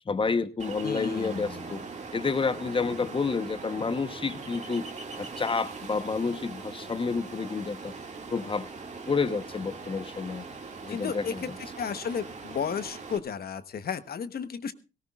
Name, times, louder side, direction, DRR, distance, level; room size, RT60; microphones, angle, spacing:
voice 1, 0.1-1.8 2.1-4.9 5.2-7.9 8.3-8.7 9.1-10.5 10.8-11.4, left 4 dB, 25° left, 12 dB, 1.0 m, -29 dB
Ocean, 0.6-13.2, right 4 dB, 35° right, 2.1 m, -41 dB
voice 2, 0.8-1.8 10.9-11.5 11.8-14.7, left 7 dB, 50° left, 12 dB, 1.2 m, -33 dB
18.0 x 17.5 x 2.4 m, 0.31 s
cardioid pair, 90°, 20 cm